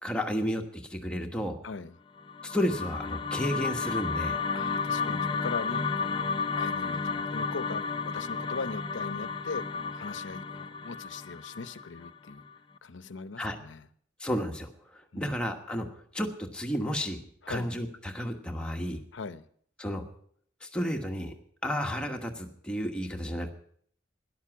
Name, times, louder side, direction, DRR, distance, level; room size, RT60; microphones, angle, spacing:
voice 1, 0.0-1.6 2.4-4.4 13.4-13.5 14.2-15.9 16.1-17.2 17.5-19.0 19.8-20.0 20.6-21.3 21.6-23.5, equal, 5° left, 1.2 m, -32 dB
voice 2, 1.6-2.0 4.5-6.3 6.6-12.4 12.8-13.9 15.1-15.4 17.4-17.7 19.1-19.5, left 4 dB, 80° left, 0.7 m, -40 dB
sound 1, 2.2-12.5, left 5 dB, 25° left, 0.5 m, -32 dB
13.0 x 11.0 x 6.0 m
head